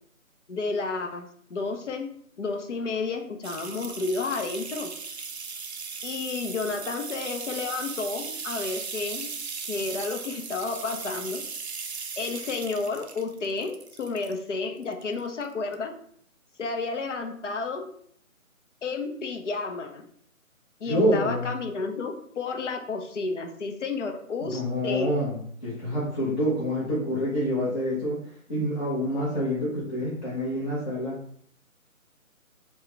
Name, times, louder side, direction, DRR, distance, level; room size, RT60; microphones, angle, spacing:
voice 1, 0.5-2.1 2.4-4.9 6.0-9.3 9.6-11.4 12.2-15.9 16.6-17.9 18.8-20.0 20.8-25.1, left 4 dB, 60° left, 4 dB, 0.7 m, -31 dB
sound 1, 3.4-14.4 14.8-15.4 15.7-15.8, right 5 dB, 50° right, 0.5 m, -37 dB
voice 2, 20.8-21.5 24.4-28.2 28.5-31.2, equal, 35° left, -8 dB, 1.0 m, -27 dB
4.4 x 2.3 x 3.3 m, 0.63 s
figure-of-eight pair, 155°, 42 cm